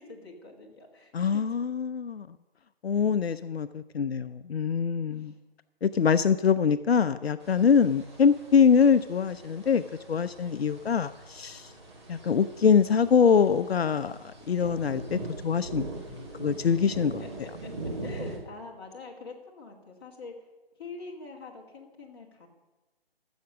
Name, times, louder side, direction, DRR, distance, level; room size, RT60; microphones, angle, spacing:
voice 1, 0.0-1.4 2.9-3.0 5.1-5.4 16.9-20.5 20.8-22.5, left 3 dB, 25° left, -3 dB, 1.8 m, -45 dB
voice 2, 1.1-2.3 2.8-5.3 5.8-9.8 10.1-11.7 12.1-14.2 14.5-15.9 16.4-17.1, left 6 dB, 75° left, 12 dB, 0.5 m, -24 dB
sound 1, 7.4-18.4, right 2 dB, 25° right, 1.9 m, -41 dB
14.5 x 7.1 x 6.3 m, 1.1 s
figure-of-eight pair, 165°, 31 cm